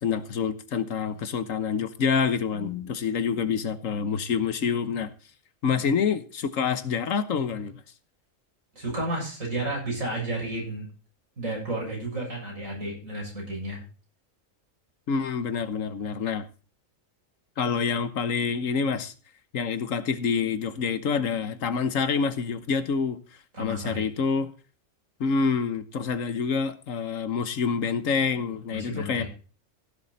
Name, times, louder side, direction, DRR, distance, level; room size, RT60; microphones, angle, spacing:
voice 1, 0.0-5.1 5.6-7.8 15.1-16.4 17.6-19.1 19.5-23.2 23.6-24.5 25.2-29.2, left 6 dB, 85° left, 1.5 m, -27 dB
voice 2, 8.7-10.9 11.4-13.8 23.5-24.0 28.7-29.3, right 1 dB, 85° right, 7.7 m, -32 dB
16.0 x 7.6 x 4.0 m
omnidirectional pair, 1.3 m